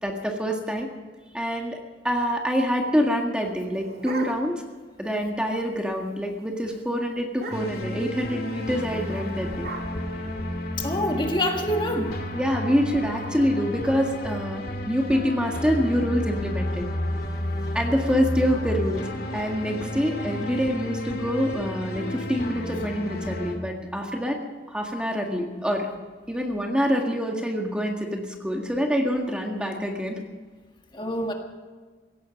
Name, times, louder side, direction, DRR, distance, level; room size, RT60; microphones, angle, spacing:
voice 1, 0.0-0.9 1.3-1.8 2.0-4.6 5.0-9.7 12.3-16.9 17.7-19.0 19.3-24.4 24.7-25.9 26.3-30.2, equal, 5° right, 1 dB, 1.7 m, -26 dB
sound 1, 3.5-4.7 5.1-5.2 5.5-5.8 6.1-6.3 6.6-6.8 7.3-7.9 8.8-10.9, right 2 dB, 55° right, 2.7 m, -40 dB
sound 2, 7.5-23.5, left 1 dB, 55° left, 2.3 m, -32 dB
voice 2, 10.8-12.2 30.9-31.3, left 1 dB, 25° left, 2 dB, 1.7 m, -26 dB
17.5 x 15.5 x 5.3 m, 1.4 s
head